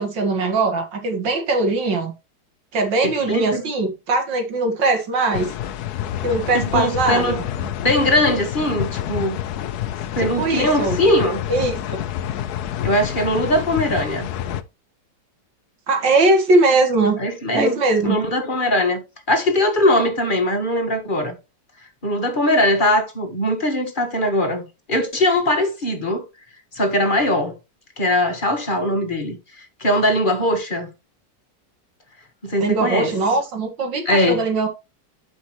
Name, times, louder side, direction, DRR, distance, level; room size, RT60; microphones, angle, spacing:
voice 1, 0.0-2.1 2.7-5.5 6.2-7.4 10.2-11.0 11.5-12.0 15.9-17.2 17.5-18.2 32.6-34.7, right 3 dB, 85° right, 2.5 m, -20 dB
voice 2, 3.0-3.6 6.5-9.4 10.1-11.4 12.8-14.3 17.2-19.0 19.3-21.3 22.0-26.2 26.7-27.5 28.0-30.9 32.4-33.1 34.0-34.4, left 1 dB, 30° left, 1.5 m, -21 dB
sound 1, 5.3-14.6, left 11 dB, 70° left, 1.1 m, -28 dB
11.5 x 5.3 x 3.1 m
omnidirectional pair, 1.9 m